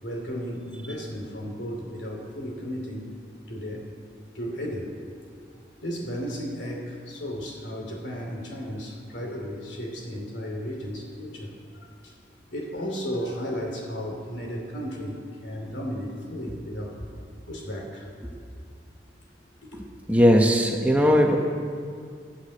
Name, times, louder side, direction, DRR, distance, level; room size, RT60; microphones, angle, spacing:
voice 1, 0.0-3.1 3.5-3.9 4.3-4.9 5.8-12.1 12.5-17.0 17.5-18.1, equal, 70° left, 1 dB, 2.9 m, -34 dB
voice 2, 19.7-21.4, equal, 10° right, 1 dB, 1.0 m, -19 dB
13.0 x 9.6 x 8.3 m, 2.3 s
head